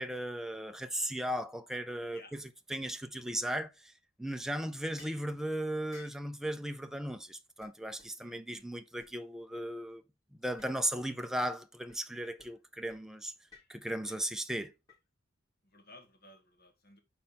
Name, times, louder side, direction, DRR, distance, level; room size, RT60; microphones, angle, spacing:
voice 1, 0.0-2.4 2.7-3.9 4.2-10.0 10.4-13.3 13.7-14.7, right 1 dB, ahead, 0.4 m, -36 dB
sound 1, 5.0-5.3 5.9-6.2 6.9-7.0 7.3-7.4 7.6-7.7 8.0-8.1 8.5-8.6 9.0-9.1 10.4-10.7 11.0-11.1 11.4-11.5 11.9-12.0 12.4-12.6 12.9-13.0 13.5-13.7 14.1-15.0, left 2 dB, 20° left, 3.5 m, -56 dB
voice 2, 8.2-8.7 15.6-17.0, left 2 dB, 50° left, 1.6 m, -57 dB
5.2 x 4.2 x 4.3 m
head